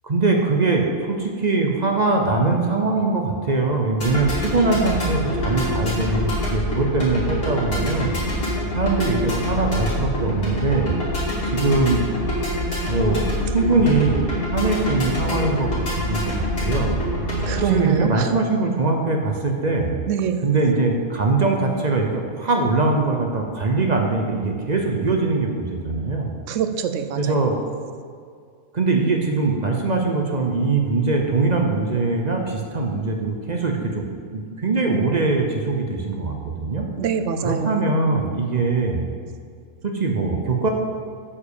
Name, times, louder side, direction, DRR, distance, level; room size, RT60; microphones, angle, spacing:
voice 1, 0.0-8.2 8.8-10.9 11.5-12.0 12.9-14.2 14.5-15.8 16.1-17.0 17.6-20.0 20.4-26.3 27.2-27.6 28.7-34.0 34.3-36.9 37.4-39.0 39.8-40.7, right 3 dB, 40° right, 2 dB, 0.7 m, -22 dB
sound 1, 4.0-17.7, left 1 dB, 85° left, 3.2 m, -25 dB
voice 2, 17.3-18.3 20.1-20.4 26.5-27.4 37.0-37.7, right 7 dB, 65° right, 8 dB, 0.9 m, -24 dB
8.5 x 5.1 x 7.0 m, 2.1 s
omnidirectional pair, 1.5 m